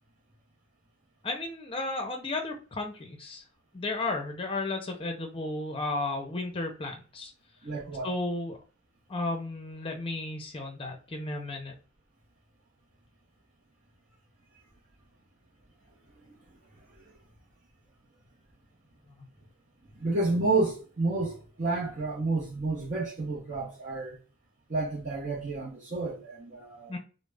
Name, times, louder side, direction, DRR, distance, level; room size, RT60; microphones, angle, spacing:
voice 1, 1.2-3.4 3.7-7.3 8.0-8.6 9.1-11.7 26.9-27.0, left 2 dB, 30° left, 0.6 m, -33 dB
voice 2, 7.6-8.1 20.0-24.2 24.7-26.9, right 3 dB, 45° right, 0.7 m, -30 dB
2.3 x 2.0 x 3.1 m
head